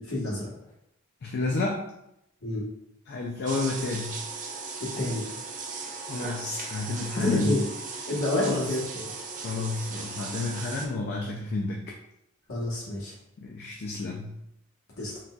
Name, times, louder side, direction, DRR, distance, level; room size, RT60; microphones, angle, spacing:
voice 1, 0.1-0.5 2.4-2.6 4.8-5.2 7.1-7.6 8.1-9.1 12.5-13.1 15.0-15.1, left 1 dB, 80° left, -5 dB, 1.1 m, -28 dB
voice 2, 1.2-1.8 3.1-4.2 6.1-7.6 8.3-8.6 9.4-11.9 13.4-14.4, left 3 dB, 50° left, 0 dB, 0.3 m, -31 dB
sound 1, 3.5-10.9, right 4 dB, 40° right, 0.4 m, -37 dB
3.9 x 2.3 x 2.2 m, 0.80 s
head